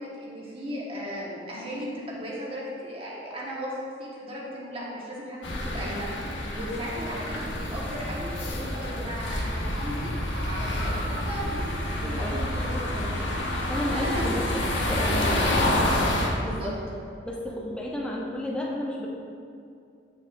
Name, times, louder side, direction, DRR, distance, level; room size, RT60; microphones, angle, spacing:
voice 1, 0.0-3.7 4.0-5.4 5.6-6.1 6.5-13.0 13.9-15.4 15.7-15.8 16.4-16.7, equal, 30° right, -5 dB, 1.4 m, -36 dB
sound 1, 5.4-16.3, left 1 dB, 80° left, 1.0 m, -28 dB
voice 2, 12.0-12.4 13.7-15.4 16.4-16.8 17.2-19.1, left 1 dB, 5° left, -2 dB, 0.7 m, -32 dB
8.8 x 6.1 x 2.6 m, 2.4 s
head